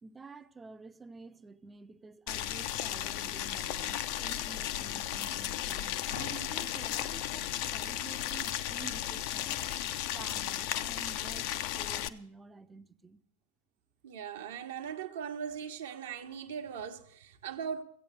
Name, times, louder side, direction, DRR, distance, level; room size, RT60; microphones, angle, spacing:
voice 1, 0.0-9.8 10.1-13.2, right 3 dB, 15° right, 0.6 m, -50 dB
Boiling, 2.3-12.1, left 12 dB, 45° left, 0.5 m, -35 dB
sound 1, 6.1-7.4 8.1-8.2, left 4 dB, 70° left, 1.6 m, -47 dB
voice 2, 14.0-17.8, right 7 dB, 55° right, 1.0 m, -39 dB
15.0 x 8.7 x 6.8 m
figure-of-eight pair, 90°, 0 cm